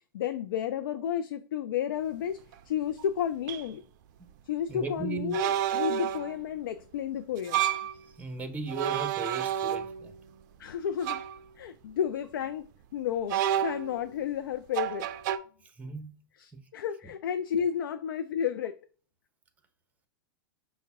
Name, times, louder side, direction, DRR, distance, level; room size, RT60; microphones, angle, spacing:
voice 1, 0.1-2.4 2.7-3.8 4.4-7.6 10.6-11.2 11.6-12.6 12.9-15.1 16.4-18.8, left 9 dB, 75° left, 0.4 m, -32 dB
sound 1, 2.5-2.6 3.5-3.6 5.3-6.4 7.4-7.9 8.7-10.1 11.0-11.4 13.3-14.1 14.7-15.4, right 10 dB, 55° right, 0.4 m, -30 dB
voice 2, 4.7-5.4 8.0-10.1 15.6-16.1 16.5-16.6, right 4 dB, 15° right, 0.8 m, -36 dB
5.6 x 2.1 x 3.5 m
hypercardioid pair, 115°, 11 cm